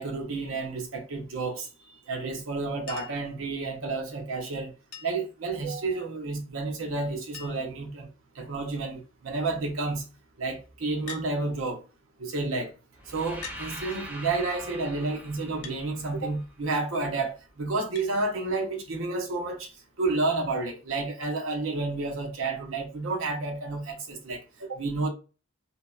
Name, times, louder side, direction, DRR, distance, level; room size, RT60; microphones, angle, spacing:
voice 1, 0.0-1.7 2.1-4.7 5.0-8.1 8.4-10.0 10.4-11.8 12.2-12.7 13.1-19.7 20.0-25.1, right 3 dB, 70° right, 0.6 m, -30 dB
Chink clink, 2.9-3.3 4.9-5.3 6.7-6.8 7.0-7.1 7.3-7.8 8.6-8.9 11.1-11.3 12.4-12.5 13.4-13.7 15.6-15.8 18.0-18.1 19.5-19.6, left 6 dB, 80° left, 0.5 m, -43 dB
sound 1, 13.0-17.0, equal, 10° right, 0.4 m, -43 dB
2.7 x 2.0 x 2.3 m
head